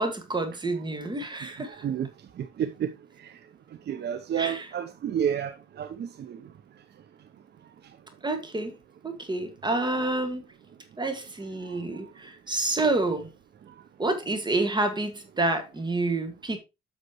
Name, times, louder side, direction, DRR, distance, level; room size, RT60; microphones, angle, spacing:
voice 1, 0.0-1.8 4.3-4.7 8.2-8.7 9.0-10.4 11.0-13.3 14.0-16.6, right 2 dB, 20° right, 1.9 m, -28 dB
voice 2, 1.7-2.1 2.4-2.9 3.2-3.3 3.9-6.4, right 9 dB, 60° right, 0.8 m, -30 dB
8.1 x 6.7 x 3.0 m
cardioid pair, 90°, 20 cm